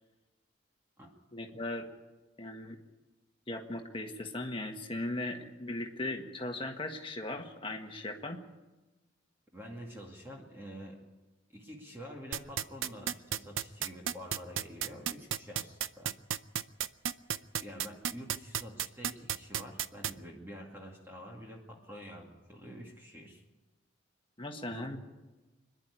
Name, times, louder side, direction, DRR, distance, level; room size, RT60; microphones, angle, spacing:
voice 1, 1.3-1.9 2.4-2.8 3.5-8.4 17.9-18.0 24.4-25.0, left 2 dB, 25° left, 3 dB, 1.7 m, -38 dB
voice 2, 9.5-11.0 11.5-16.1 17.6-23.4 24.7-24.9, equal, 10° right, -1 dB, 2.3 m, -47 dB
sound 1, 12.3-20.1, right 10 dB, 85° right, 0.6 m, -32 dB
25.5 x 11.0 x 9.9 m, 1.2 s
head